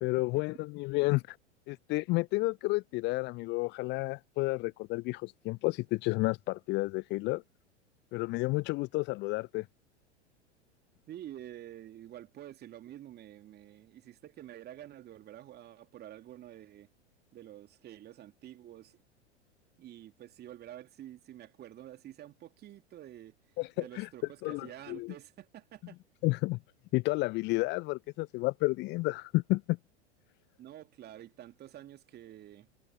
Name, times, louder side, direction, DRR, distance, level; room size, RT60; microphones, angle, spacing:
voice 1, 0.0-1.4 1.7-7.4 8.1-9.7 23.6-24.1 24.4-25.1 26.2-26.6 26.9-29.8, left 22 dB, 30° left, 0.8 m, -31 dB
voice 2, 11.1-16.9 17.3-19.0 19.8-23.4 23.8-26.0 30.6-32.7, right 12 dB, 30° right, 2.7 m, -48 dB
figure-of-eight pair, 90°, 35 cm